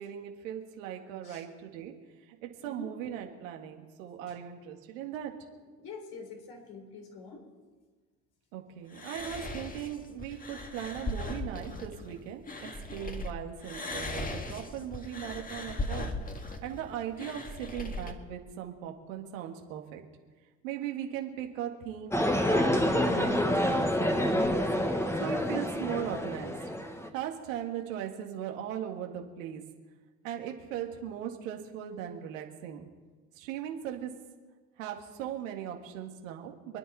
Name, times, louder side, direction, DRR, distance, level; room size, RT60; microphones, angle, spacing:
voice 1, 0.0-1.9 2.4-5.3 8.5-16.2 16.6-20.0 20.6-22.2 22.5-24.7 25.2-26.6 27.1-29.6 30.2-32.9 33.3-34.1 34.8-36.8, right 10 dB, 90° right, 3 dB, 2.0 m, -38 dB
voice 2, 2.6-2.9 5.8-7.5, left 4 dB, 70° left, 2 dB, 4.0 m, -45 dB
sound 1, 8.9-13.3 13.6-18.1, left 2 dB, 20° left, 1.8 m, -38 dB
sound 2, 22.1-27.1, left 1 dB, 5° left, 1.6 m, -28 dB
27.5 x 9.8 x 4.3 m, 1.4 s
supercardioid pair, 85°, 38 cm